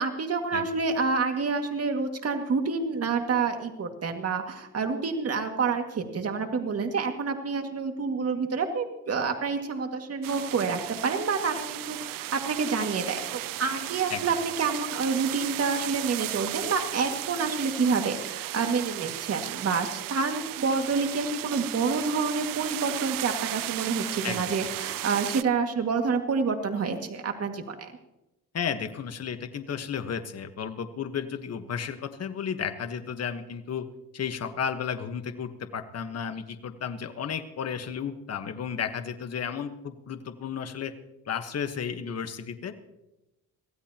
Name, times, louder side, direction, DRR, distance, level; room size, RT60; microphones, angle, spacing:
voice 1, 0.0-27.9, right 4 dB, 45° right, 4 dB, 2.1 m, -28 dB
sound 1, 10.2-25.4, right 15 dB, 80° right, 0.6 m, -35 dB
voice 2, 24.2-24.7 28.5-33.8 34.1-40.9 41.3-42.7, left 7 dB, 50° left, 8 dB, 1.3 m, -33 dB
23.5 x 16.0 x 2.9 m, 0.94 s
cardioid pair, 105°, 33 cm